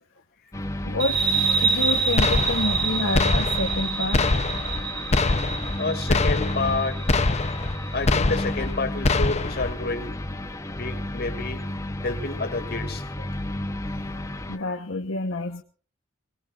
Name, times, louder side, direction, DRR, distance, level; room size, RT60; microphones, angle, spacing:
sound 1, 0.5-14.6, left 1 dB, 15° left, 1.1 m, -32 dB
voice 1, 0.8-4.3 13.2-13.3 13.8-13.9 14.5-15.6, left 2 dB, 75° left, 3 dB, 1.3 m, -29 dB
sound 2, 1.0-8.2, right 5 dB, 50° right, 2.5 m, -27 dB
sound 3, 2.2-2.9 3.1-3.8 4.1-4.8 5.1-5.8 6.1-6.8 7.1-7.8 8.1-8.8 9.0-9.7, left 3 dB, 35° left, 0.8 m, -24 dB
voice 2, 5.8-7.0 7.9-10.2 10.8-11.6 12.0-13.0, left 3 dB, 50° left, 7 dB, 2.7 m, -29 dB
26.0 x 19.0 x 2.6 m, 0.39 s
head